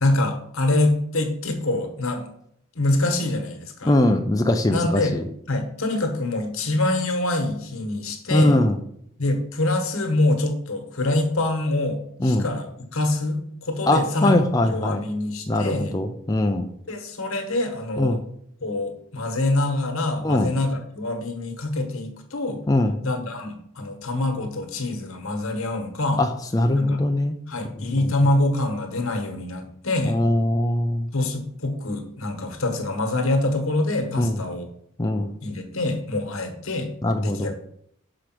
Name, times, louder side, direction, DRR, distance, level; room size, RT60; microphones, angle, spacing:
voice 1, 0.0-2.3 2.7-3.9 4.7-5.2 5.5-8.6 9.2-14.3 14.6-15.9 16.9-18.2 18.6-22.6 23.0-26.2 26.7-27.0 27.5-30.2 31.1-34.7 35.4-36.9 37.2-37.5, left 2 dB, 80° left, 5 dB, 1.4 m, -25 dB
voice 2, 3.8-5.2 8.3-8.8 12.2-12.5 13.9-15.0 15.5-16.7 18.0-18.2 20.2-20.5 22.7-23.0 26.2-27.4 28.0-28.1 30.1-31.1 34.2-34.4 35.0-35.3 37.0-37.5, left 1 dB, 15° left, 4 dB, 0.4 m, -21 dB
5.9 x 5.0 x 6.0 m, 0.71 s
head